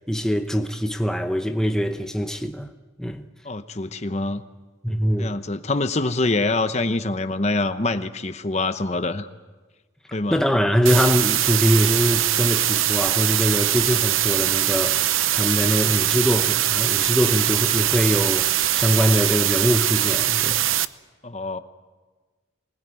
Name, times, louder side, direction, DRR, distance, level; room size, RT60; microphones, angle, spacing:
voice 1, 0.0-2.7 3.0-3.3 4.8-5.4 10.3-20.7, equal, 5° left, 0.8 m, -23 dB
voice 2, 3.4-4.4 5.2-9.3 10.1-10.4 21.2-21.6, left 2 dB, 35° left, 0.9 m, -25 dB
sound 1, 10.9-20.9, right 13 dB, 85° right, 0.7 m, -22 dB
25.0 x 20.0 x 9.4 m
head